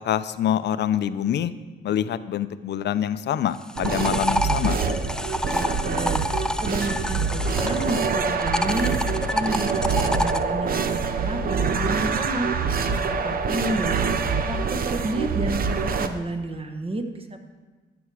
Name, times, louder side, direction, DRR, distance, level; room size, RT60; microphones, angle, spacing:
voice 1, 0.0-1.5 1.8-4.8, left 10 dB, 60° left, 13 dB, 0.5 m, -25 dB
sound 1, 3.5-8.1 8.4-10.4, left 1 dB, 5° left, 0.4 m, -28 dB
sound 2, 3.8-16.1, right 5 dB, 50° right, 0.8 m, -25 dB
voice 2, 5.5-6.2 6.6-12.5 13.2-14.1 14.5-17.4, right 1 dB, 30° right, 7 dB, 1.2 m, -30 dB
12.0 x 7.0 x 4.9 m, 1.3 s
cardioid pair, 90°, 20 cm